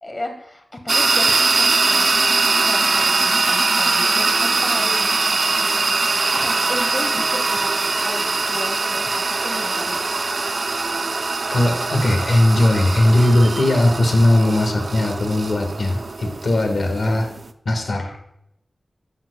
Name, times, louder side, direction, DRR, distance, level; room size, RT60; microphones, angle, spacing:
voice 1, 0.0-2.1 2.6-5.4 6.3-10.0, left 1 dB, 30° left, 4 dB, 1.5 m, -34 dB
sound 1, 0.9-17.5, right 3 dB, 55° right, 0.5 m, -21 dB
voice 2, 11.5-17.3 17.6-18.2, left 1 dB, 65° left, 4 dB, 1.6 m, -18 dB
11.0 x 7.1 x 2.2 m, 0.78 s
wide cardioid pair, 110°, 0 cm